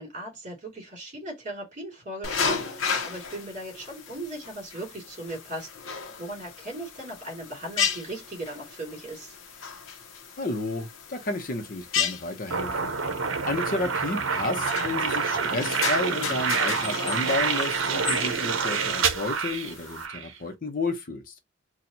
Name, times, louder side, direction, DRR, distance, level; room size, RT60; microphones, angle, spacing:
voice 1, 0.0-9.4, right 1 dB, 40° right, 2.5 m, -38 dB
sound 1, 2.2-20.1, left 6 dB, 85° left, 0.8 m, -34 dB
voice 2, 10.4-12.9 13.5-21.3, left 2 dB, 45° left, 0.8 m, -31 dB
sound 2, 12.5-20.3, right 5 dB, 75° right, 0.7 m, -27 dB
4.3 x 2.3 x 2.7 m
head